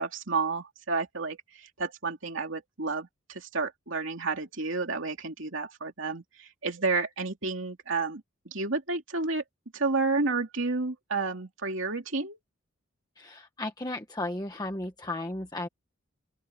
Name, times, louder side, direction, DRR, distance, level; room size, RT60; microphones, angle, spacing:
voice 1, 0.0-9.4 9.7-12.4, right 3 dB, 65° right, 3.0 m, -31 dB
voice 2, 13.2-15.7, left 2 dB, 20° left, 1.2 m, -34 dB
open air
head